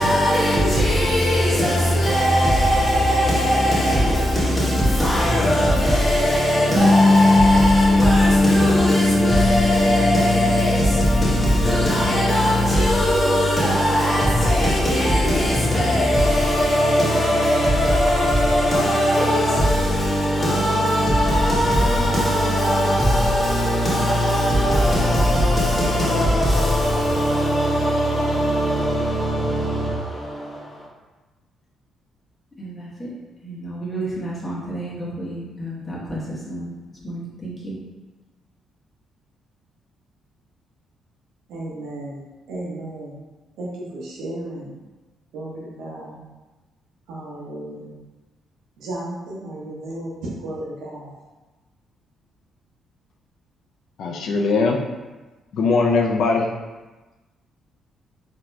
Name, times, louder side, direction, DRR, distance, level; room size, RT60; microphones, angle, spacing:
voice 1, 0.0-30.9 32.6-33.1 33.4-36.7 37.0-37.7, equal, 15° left, 1.3 m, -20 dB
Bass guitar, 6.8-13.0, left 2 dB, 15° right, 0.4 m, -19 dB
voice 2, 41.5-42.2 42.5-43.1 43.6-44.7 45.3-46.2 47.1-47.9 48.8-51.1, right 1 dB, 90° right, 0.9 m, -33 dB
voice 3, 54.0-54.8 55.5-56.5, left 4 dB, 70° left, 0.4 m, -20 dB
4.0 x 2.8 x 2.2 m
cardioid pair, 90°, 0 cm